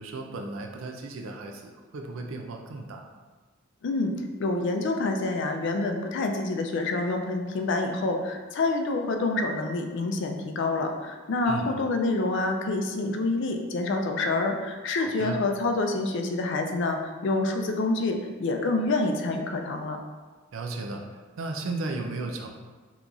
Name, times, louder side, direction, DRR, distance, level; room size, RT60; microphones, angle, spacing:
voice 1, 0.0-3.1 11.4-11.7 15.0-15.4 20.5-21.0 21.4-22.5, right 3 dB, 80° right, 3 dB, 0.4 m, -35 dB
voice 2, 4.4-20.0, left 2 dB, 65° left, 4 dB, 0.4 m, -27 dB
2.9 x 2.4 x 3.7 m, 1.4 s
head